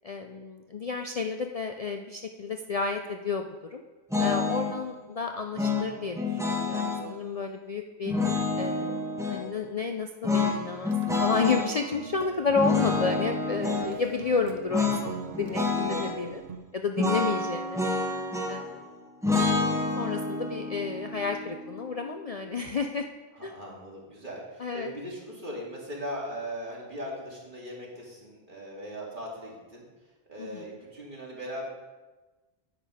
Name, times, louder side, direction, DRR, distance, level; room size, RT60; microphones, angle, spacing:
voice 1, 0.0-3.8 4.2-8.1 8.6-16.4 16.7-17.8 18.5-18.8 20.0-23.1 23.4-23.5 24.6-24.9 30.4-30.6, left 4 dB, 45° left, 5 dB, 0.5 m, -31 dB
sound 1, 4.1-4.8 5.6-7.0 8.1-9.5 10.2-11.7 12.6-13.9 14.7-15.1 15.3-16.1 17.0-18.7 19.2-22.3, left 3 dB, 5° right, 1.4 m, -28 dB
sound 2, 10.7-16.6, right 6 dB, 70° right, 1.1 m, -43 dB
voice 2, 23.3-29.8 30.3-31.7, equal, 50° right, -4 dB, 2.7 m, -39 dB
9.6 x 8.8 x 4.9 m, 1.2 s
omnidirectional pair, 1.1 m